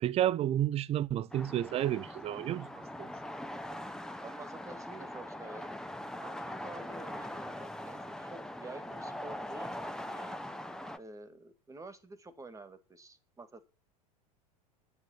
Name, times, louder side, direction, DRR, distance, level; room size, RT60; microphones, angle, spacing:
voice 1, 0.0-2.7 3.0-3.1, right 12 dB, 30° right, 0.5 m, -30 dB
sound 1, 1.3-11.0, left 1 dB, 5° left, 1.0 m, -42 dB
voice 2, 4.2-5.8 6.2-10.4 11.0-13.6, right 2 dB, 15° right, 2.0 m, -49 dB
9.6 x 7.6 x 8.7 m
hypercardioid pair, 90°, 20 cm